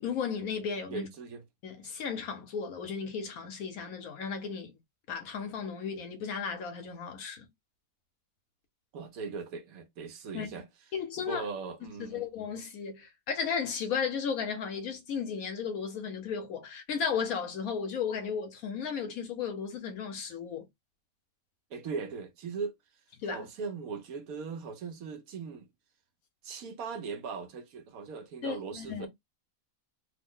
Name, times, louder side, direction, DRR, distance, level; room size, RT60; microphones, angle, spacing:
voice 1, 0.0-1.1 1.6-4.7 5.1-7.5 10.3-10.5 10.9-11.5 12.0-20.7 23.2-23.5 28.4-29.1, left 6 dB, 75° left, 1.3 m, -34 dB
voice 2, 0.9-1.4 1.8-2.0 8.9-10.7 11.2-12.3 21.7-22.7 23.2-25.7 26.4-29.1, right 5 dB, 75° right, 1.2 m, -39 dB
3.2 x 2.1 x 3.6 m
omnidirectional pair, 1.5 m